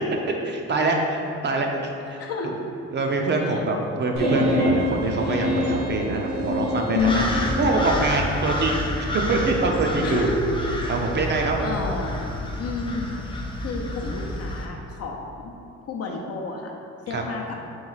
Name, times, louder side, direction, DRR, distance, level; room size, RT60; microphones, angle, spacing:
voice 1, 0.4-2.3 2.9-7.3 7.6-10.3 10.9-11.7 17.1-17.2, right 3 dB, 35° right, 1 dB, 0.5 m, -24 dB
voice 2, 2.2-2.5 3.5-3.6 6.9-7.3 10.0-10.7 11.4-12.3 12.6-13.2 13.6-15.5 15.8-16.7 17.1-17.6, left 4 dB, 55° left, 0 dB, 0.6 m, -30 dB
sound 1, 4.2-7.9, equal, 75° right, 0.9 m, -25 dB
sound 2, 7.0-14.7, left 1 dB, 15° left, 0.5 m, -29 dB
3.7 x 3.1 x 3.9 m, 2.6 s
cardioid pair, 90°, 30 cm